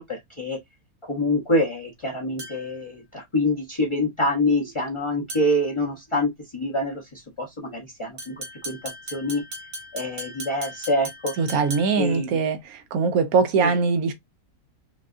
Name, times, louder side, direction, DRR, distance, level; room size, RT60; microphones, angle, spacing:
voice 1, 0.1-0.6 1.1-8.8 9.1-9.4 9.9-11.3 12.0-12.4 13.6-13.8, left 1 dB, 25° left, 0.8 m, -26 dB
sound 1, 2.4-2.8 5.3-5.7 8.2-12.1, right 1 dB, 65° right, 1.9 m, -38 dB
voice 2, 11.4-14.1, right 5 dB, 80° right, 1.2 m, -22 dB
5.1 x 2.4 x 2.5 m
omnidirectional pair, 1.5 m